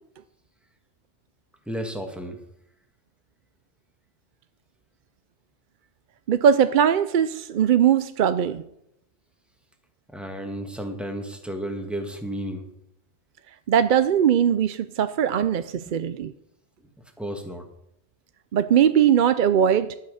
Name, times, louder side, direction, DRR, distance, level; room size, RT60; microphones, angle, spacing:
voice 1, 1.7-2.4 10.1-12.7 17.2-17.7, right 1 dB, ahead, 4 dB, 1.7 m, -32 dB
voice 2, 6.3-8.6 13.7-16.3 18.5-20.0, right 9 dB, 55° right, 12 dB, 0.6 m, -20 dB
11.5 x 8.7 x 6.4 m, 0.77 s
omnidirectional pair, 1.1 m